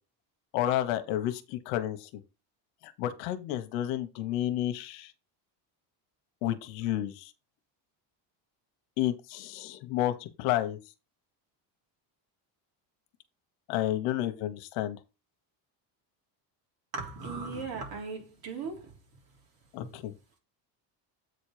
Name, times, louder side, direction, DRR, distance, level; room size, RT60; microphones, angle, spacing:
voice 1, 0.5-2.1 2.8-5.1 6.4-7.3 9.0-10.8 13.7-15.0 19.7-20.1, left 13 dB, 85° left, 1.3 m, -31 dB
voice 2, 16.9-18.9, right 4 dB, 50° right, 3.6 m, -37 dB
8.3 x 4.2 x 5.0 m
cardioid pair, 130°, 46 cm